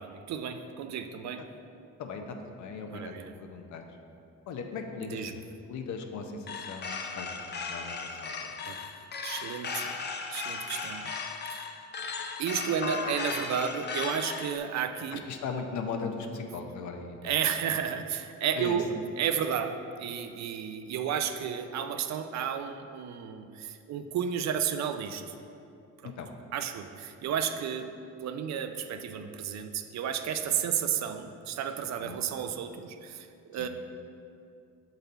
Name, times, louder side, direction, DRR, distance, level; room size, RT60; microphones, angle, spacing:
voice 1, 0.0-1.4 2.9-3.3 5.0-5.4 8.6-8.8 9.2-9.9 10.3-11.1 11.5-11.7 12.4-15.3 17.2-25.2 26.0-26.1 26.5-27.9 28.2-33.7, right 8 dB, 65° right, 8 dB, 0.5 m, -32 dB
voice 2, 2.0-3.1 3.4-3.8 4.5-7.3 7.5-8.5 15.1-17.3 18.6-18.8 26.0-26.3 30.4-30.6 32.0-32.2 33.6-33.7, left 5 dB, 70° left, 4 dB, 0.7 m, -38 dB
sound 1, 6.5-14.6, left 5 dB, 35° left, 0.5 m, -36 dB
6.7 x 4.0 x 4.0 m, 2.5 s
cardioid pair, 90°, 30 cm